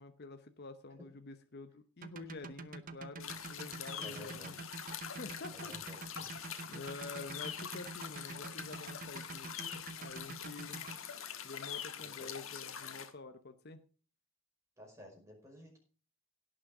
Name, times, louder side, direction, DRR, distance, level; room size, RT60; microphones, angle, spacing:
voice 1, 0.0-4.6 5.2-5.7 6.7-10.9 11.4-13.8, left 3 dB, 50° left, 8 dB, 0.8 m, -48 dB
sound 1, 2.0-11.0, right 4 dB, 40° right, 0.8 m, -47 dB
sound 2, 3.2-13.1, left 8 dB, 75° left, 1.5 m, -44 dB
voice 2, 4.0-4.6 5.5-6.3 12.0-12.3 14.8-15.8, left 1 dB, 15° right, 0 dB, 5.2 m, -54 dB
17.0 x 6.4 x 4.9 m, 0.39 s
head